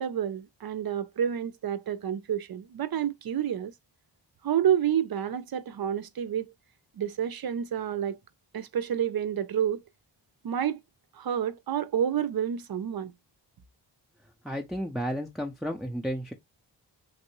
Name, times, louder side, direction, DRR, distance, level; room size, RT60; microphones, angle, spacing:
voice 1, 0.0-3.7 4.4-6.5 7.0-8.2 8.5-9.8 10.4-10.8 11.2-13.1, right 9 dB, 55° right, 0.5 m, -29 dB
voice 2, 14.4-16.3, equal, ahead, 0.5 m, -32 dB
3.1 x 2.6 x 2.9 m
cardioid pair, 55°, 45 cm